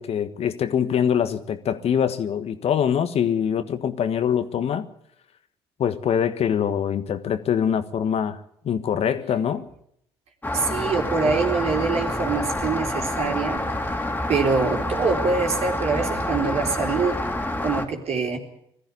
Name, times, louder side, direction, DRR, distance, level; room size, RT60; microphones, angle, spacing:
voice 1, 0.0-4.9 5.8-8.4 8.6-9.7 11.2-11.3, left 8 dB, 50° left, 1.5 m, -24 dB
Rain, 10.4-17.9, left 1 dB, 15° left, 3.1 m, -27 dB
voice 2, 10.5-13.6 14.3-17.2 17.6-18.4, right 4 dB, 55° right, 3.9 m, -24 dB
20.0 x 14.5 x 9.7 m
figure-of-eight pair, 50°, 13 cm